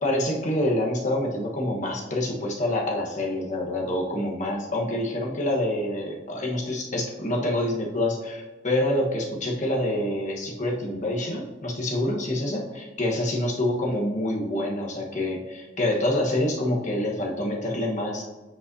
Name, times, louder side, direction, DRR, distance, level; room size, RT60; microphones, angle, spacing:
voice 1, 0.0-18.2, left 1 dB, 45° left, -1 dB, 1.2 m, -26 dB
8.7 x 5.3 x 2.7 m, 1.2 s
head